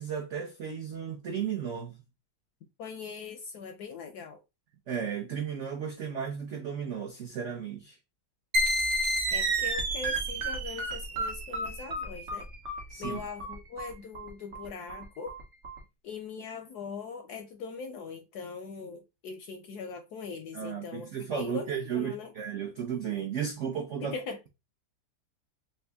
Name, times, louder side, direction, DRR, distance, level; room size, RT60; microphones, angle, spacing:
voice 1, 0.0-2.0 4.9-8.0 12.9-13.2 20.5-24.1, right 7 dB, 75° right, 0.6 m, -34 dB
voice 2, 2.8-4.4 9.3-12.5 13.0-15.4 16.0-22.3 24.0-24.5, left 5 dB, 75° left, 0.9 m, -41 dB
sound 1, 8.5-15.8, right 1 dB, 50° right, 0.9 m, -31 dB
3.3 x 2.7 x 3.4 m
omnidirectional pair, 2.1 m